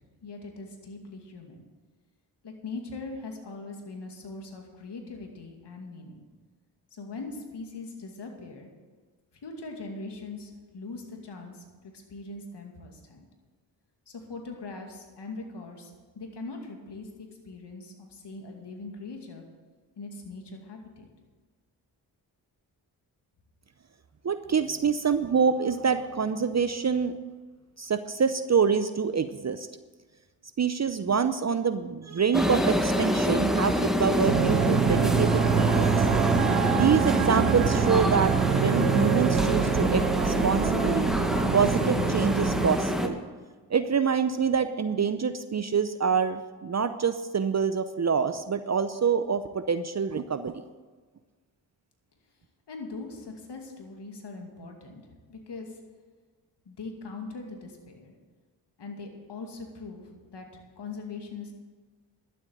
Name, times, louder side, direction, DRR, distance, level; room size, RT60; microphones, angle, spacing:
voice 1, 0.2-1.6 2.4-6.2 6.9-8.7 9.4-13.2 14.1-19.4 20.0-21.1 52.7-55.0 55.3-55.8 56.7-58.1 58.8-60.5 60.8-61.5, left 3 dB, 65° left, 2 dB, 2.4 m, -41 dB
voice 2, 24.2-27.2 27.8-29.7 30.6-36.1 36.6-41.1 41.5-43.2 43.7-50.5, right 6 dB, 40° right, 11 dB, 0.7 m, -26 dB
sound 1, 32.3-43.1, equal, ahead, 1.6 m, -26 dB
sound 2, 34.3-42.7, right 10 dB, 80° right, 0.6 m, -26 dB
11.5 x 8.0 x 7.9 m, 1.4 s
supercardioid pair, 40°, 44 cm